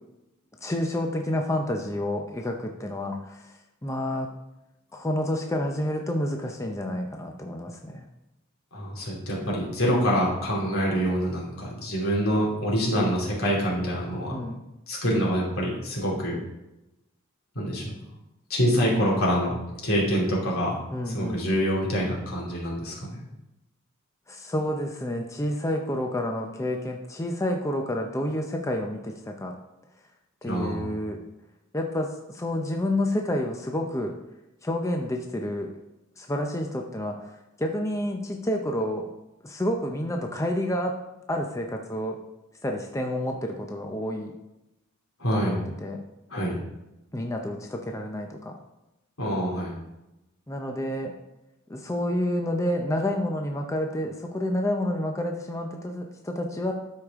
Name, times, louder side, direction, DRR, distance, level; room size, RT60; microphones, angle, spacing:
voice 1, 0.6-3.5 3.8-4.3 4.9-8.1 14.3-14.6 20.9-21.5 24.3-29.5 30.4-31.2 31.7-34.1 34.6-35.7 36.2-37.2 37.6-39.1 39.4-41.0 41.3-42.2 42.6-44.3 45.3-46.0 47.1-48.6 50.5-51.1 51.7-56.7, left 1 dB, 15° left, 3 dB, 0.6 m, -29 dB
voice 2, 8.7-14.4 14.9-16.3 17.5-17.9 18.5-20.8 21.1-23.2 30.4-30.9 45.2-45.6 46.3-46.6 49.2-49.8, equal, 75° left, -4 dB, 3.0 m, -26 dB
12.5 x 5.0 x 3.6 m, 0.94 s
head